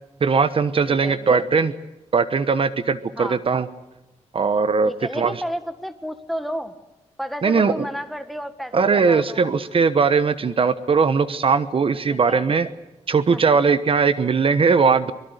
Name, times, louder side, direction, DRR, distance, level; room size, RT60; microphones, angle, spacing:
voice 1, 0.2-1.7 2.1-3.7 4.3-5.3 7.4-7.9 8.7-12.7 13.1-15.1, right 5 dB, 50° right, 13 dB, 1.1 m, -19 dB
voice 2, 0.9-1.5 3.2-3.4 4.8-6.7 7.2-9.4 12.3-12.4 13.3-13.4, equal, ahead, 10 dB, 1.7 m, -31 dB
24.5 x 22.5 x 8.0 m, 0.98 s
wide cardioid pair, 150°, 12 cm